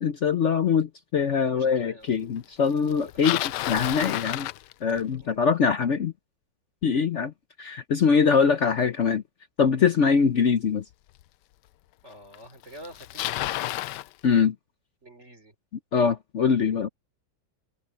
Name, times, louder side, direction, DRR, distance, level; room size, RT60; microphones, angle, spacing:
voice 1, 0.0-3.4 3.7-4.5 4.8-6.1 6.8-7.3 7.6-9.2 9.6-10.8 14.2-14.5 15.9-16.9, left 6 dB, 60° left, 0.8 m, -23 dB
voice 2, 1.4-2.1 2.9-3.6 5.2-5.5 12.0-13.6 15.0-15.6, equal, 35° right, 5.2 m, -47 dB
Bicycle, 2.9-5.2 10.3-10.4 11.2-11.3 12.3-12.4 12.6-14.1, left 15 dB, 75° left, 1.1 m, -30 dB
omnidirectional pair, 2.0 m